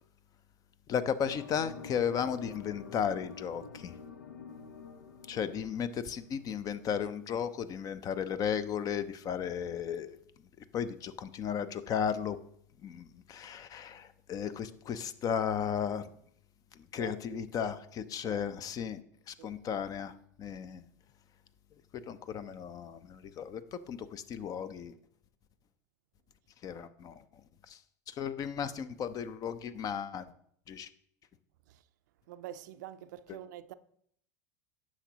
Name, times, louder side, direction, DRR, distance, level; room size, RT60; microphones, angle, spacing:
voice 1, 0.9-3.9 5.3-10.2 10.7-12.4 12.8-16.1 16.9-19.0 19.3-20.1 20.4-20.8 22.1-23.6 23.9-24.9 26.6-27.1 27.7-27.8 28.1-30.3 30.7-30.9, left 8 dB, 35° left, 0.6 m, -35 dB
sound 1, 1.2-6.4, left 4 dB, 85° left, 0.7 m, -48 dB
voice 2, 17.0-17.7 18.2-18.4 19.4-19.8 31.7-31.8 32.3-33.7, right 12 dB, 70° right, 0.4 m, -46 dB
9.8 x 6.2 x 2.9 m
hypercardioid pair, 90°, 10 cm